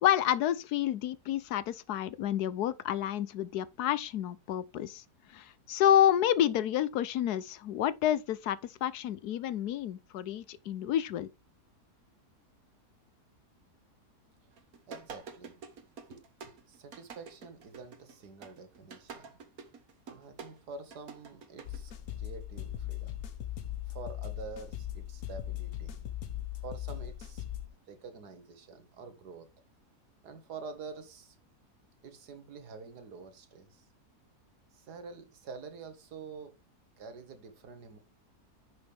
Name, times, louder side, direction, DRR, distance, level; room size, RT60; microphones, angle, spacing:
voice 1, 0.0-5.0 5.3-11.3, left 11 dB, 85° left, 1.3 m, -29 dB
sound 1, 14.5-21.9, right 5 dB, 65° right, 1.8 m, -48 dB
voice 2, 14.9-15.6 16.1-19.3 20.1-21.9 22.2-23.2 23.9-26.1 26.6-27.4 27.9-29.5 30.2-31.4 32.0-33.9 34.7-36.6 37.0-38.0, right 4 dB, 85° right, 1.9 m, -47 dB
sound 2, 21.7-27.7, left 12 dB, 65° left, 1.5 m, -39 dB
10.5 x 6.2 x 3.4 m
omnidirectional pair, 1.7 m